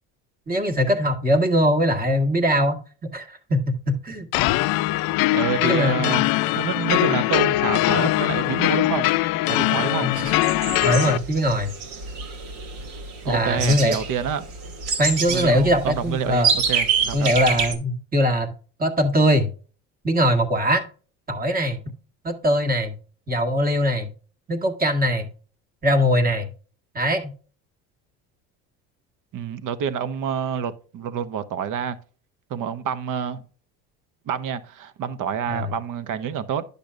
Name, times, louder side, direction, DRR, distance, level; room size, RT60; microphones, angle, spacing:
voice 1, 0.5-2.8 3.1-4.4 5.6-6.2 10.0-10.2 10.8-11.7 13.2-14.0 15.0-16.5 17.1-18.5 18.8-19.5 20.0-20.8 21.3-21.8 22.2-22.9 23.3-24.1 24.5-25.3 25.8-26.5 26.9-27.3 35.5-35.7, equal, 25° right, 1.6 m, -21 dB
sound 1, 4.3-11.2, left 17 dB, 65° left, 0.5 m, -21 dB
voice 2, 5.3-6.2 6.5-9.1 9.5-10.1 13.2-14.4 15.3-17.3 29.3-32.0 32.5-33.4 34.3-36.7, right 7 dB, 55° right, 1.0 m, -27 dB
sound 2, 10.1-17.7, right 5 dB, 75° right, 2.3 m, -27 dB
10.0 x 6.8 x 2.5 m
supercardioid pair, 95°, 38 cm